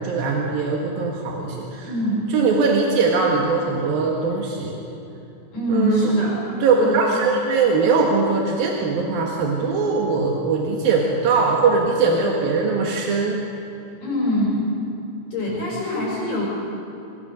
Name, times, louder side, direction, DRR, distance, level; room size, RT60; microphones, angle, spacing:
voice 1, 0.0-1.9 2.3-4.8 5.7-6.1 6.6-13.4, right 4 dB, 80° right, -1 dB, 3.5 m, -21 dB
voice 2, 1.8-2.2 5.5-6.4 6.8-7.0 7.3-7.4 14.0-14.7 15.3-16.5, equal, 65° left, -4 dB, 6.6 m, -23 dB
26.5 x 21.0 x 6.6 m, 2.8 s
omnidirectional pair, 4.1 m